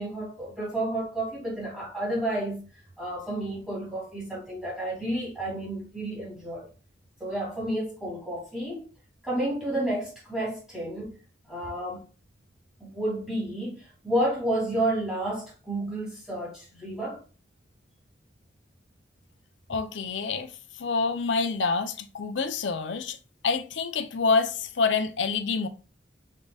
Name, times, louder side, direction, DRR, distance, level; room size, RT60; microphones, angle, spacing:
voice 1, 0.0-2.6 3.0-6.7 7.2-8.8 9.2-11.1 11.5-12.0 12.8-17.2, right 1 dB, 5° right, 2.4 m, -31 dB
voice 2, 19.7-20.5 20.8-23.2 23.4-25.7, left 4 dB, 80° left, 0.6 m, -27 dB
5.2 x 3.7 x 2.3 m
head